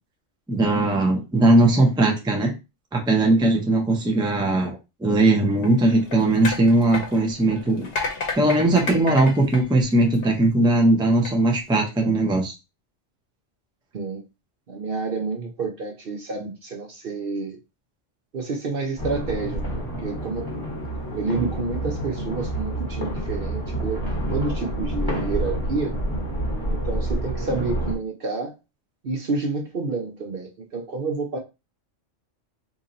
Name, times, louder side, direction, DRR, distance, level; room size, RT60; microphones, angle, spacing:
voice 1, 0.5-2.5 2.9-7.9 8.4-12.5, right 2 dB, 5° right, 1 dB, 0.5 m, -19 dB
sound 1, 5.6-10.5 11.1-11.3, left 4 dB, 55° left, 1.0 m, -32 dB
voice 2, 14.7-17.6 18.3-20.5 21.1-24.0 24.3-26.0 26.7-28.5 29.0-31.4, right 4 dB, 55° right, 2 dB, 0.8 m, -29 dB
sound 2, 19.0-28.0, right 1 dB, 20° left, 1.6 m, -28 dB
2.8 x 2.8 x 3.8 m, 0.26 s
omnidirectional pair, 1.3 m